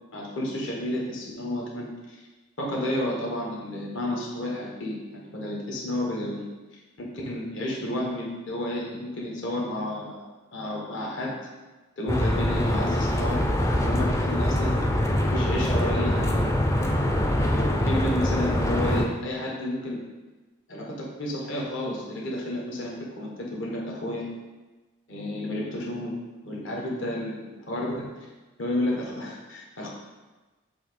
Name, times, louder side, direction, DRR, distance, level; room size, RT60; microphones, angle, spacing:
voice 1, 0.1-2.2 2.6-6.5 7.0-11.3 12.0-13.4 13.7-14.7 15.2-16.5 17.5-20.0 20.7-24.3 25.1-26.1 26.4-28.1 28.6-29.9, left 1 dB, 60° left, -3 dB, 1.3 m, -31 dB
sound 1, 12.1-19.1, left 1 dB, 15° left, 0.4 m, -24 dB
7.2 x 2.8 x 5.2 m, 1.2 s
head